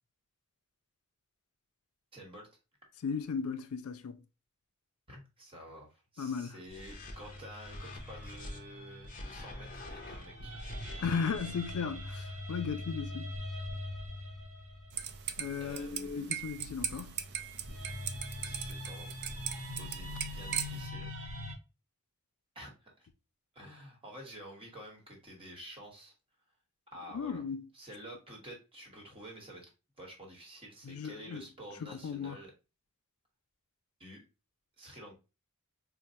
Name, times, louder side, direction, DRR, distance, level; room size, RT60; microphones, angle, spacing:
voice 1, 2.1-2.5 5.1-11.1 15.6-16.4 18.4-19.1 19.8-21.1 22.5-23.1 23.5-26.1 26.9-27.4 27.7-29.7 30.0-32.5 34.0-34.2 34.8-35.1, equal, 25° right, 1.2 m, -50 dB
voice 2, 3.0-4.2 6.2-6.5 11.0-13.2 15.4-17.1 27.1-27.6 30.8-31.4 31.9-32.4, left 6 dB, 75° left, 0.4 m, -36 dB
sound 1, 6.7-8.6 9.0-11.7, left 1 dB, 40° left, 0.6 m, -46 dB
sound 2, 6.7-15.8 16.7-21.5, left 1 dB, 65° right, 0.9 m, -43 dB
sound 3, 14.9-20.9, right 9 dB, 50° right, 0.4 m, -39 dB
4.5 x 2.1 x 2.6 m
head